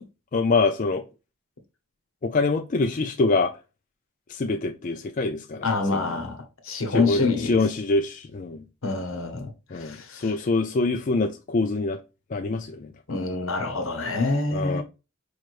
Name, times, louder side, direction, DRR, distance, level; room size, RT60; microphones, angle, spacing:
voice 1, 0.3-1.0 2.2-3.5 4.3-5.7 5.9-6.1 6.9-8.6 9.7-12.0 12.3-12.9 14.5-14.8, left 3 dB, 40° left, 0.4 m, -25 dB
voice 2, 5.6-6.4 6.6-7.6 8.8-10.3 13.1-14.8, left 3 dB, 75° left, 1.0 m, -26 dB
4.8 x 3.1 x 2.5 m
head